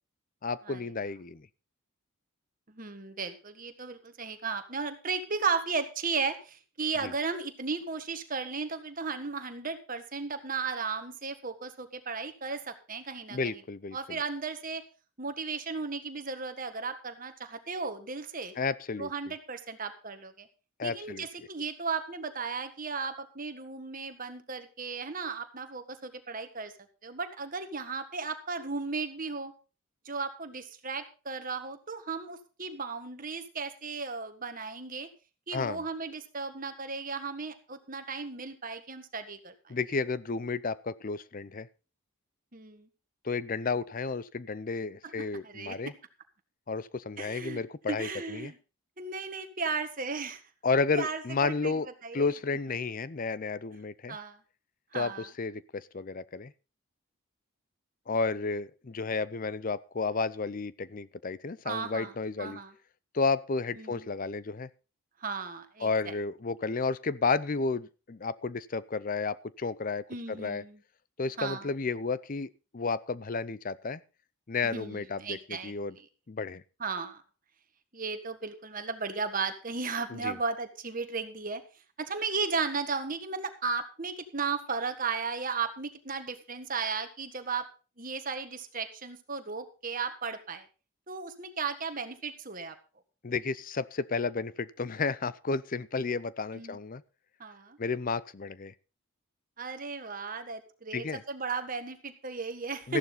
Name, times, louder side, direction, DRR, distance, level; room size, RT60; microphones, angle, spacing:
voice 1, 0.4-1.5 7.0-7.1 13.3-14.2 18.6-19.1 20.8-21.3 35.5-35.8 39.7-41.7 43.2-45.9 46.7-48.5 50.6-51.9 52.1-54.2 54.9-56.5 58.1-62.6 63.1-64.7 65.8-70.6 71.2-74.0 74.5-76.0 76.3-76.6 80.1-80.4 93.2-97.0 97.8-98.7 100.9-101.2 102.9-103.0, left 4 dB, 40° left, 18 dB, 0.5 m, -32 dB
voice 2, 2.7-13.6 13.9-14.8 15.2-18.5 19.0-20.5 20.8-26.7 27.0-29.5 30.0-35.1 35.5-39.5 42.5-42.9 45.0-45.8 47.2-47.6 47.9-48.6 49.0-50.4 50.9-52.3 54.1-54.4 54.9-55.3 58.1-58.2 61.6-62.1 62.4-62.7 63.8-64.1 65.2-66.1 70.1-70.8 71.4-71.7 74.6-76.0 76.8-77.2 77.9-81.6 82.0-87.7 88.0-90.6 91.1-92.7 96.5-96.8 97.4-97.8 99.6-103.0, right 4 dB, 40° right, 8 dB, 1.6 m, -35 dB
14.5 x 11.0 x 3.9 m, 0.33 s
head